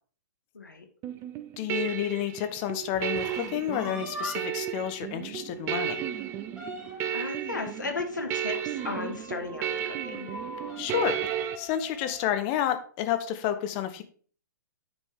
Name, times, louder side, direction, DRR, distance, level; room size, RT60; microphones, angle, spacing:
voice 1, 0.5-0.9 7.1-10.3, left 4 dB, 80° left, 5 dB, 1.6 m, -35 dB
sound 1, 1.0-11.6, right 10 dB, 25° right, 0.5 m, -33 dB
voice 2, 1.6-6.1 10.8-11.2 11.6-14.0, left 11 dB, 35° left, 8 dB, 0.9 m, -30 dB
sound 2, 2.9-4.7 5.1-5.2 5.6-5.7 6.0-7.2 8.5-12.4, equal, 10° right, 2.3 m, -42 dB
9.6 x 5.2 x 3.6 m, 0.43 s
figure-of-eight pair, 115°, 10 cm